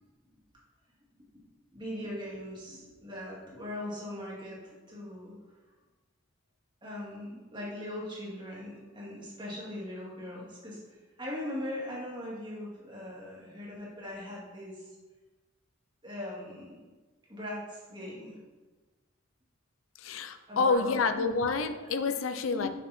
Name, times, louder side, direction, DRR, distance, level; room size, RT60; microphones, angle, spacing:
voice 1, 1.7-5.4 6.8-15.0 16.0-16.8 17.3-18.4 20.5-21.3 21.7-21.9 22.5-22.7, left 1 dB, 25° right, -6 dB, 2.3 m, -40 dB
voice 2, 20.0-22.7, left 4 dB, 90° left, 9 dB, 0.5 m, -28 dB
6.8 x 5.4 x 4.3 m, 1.3 s
head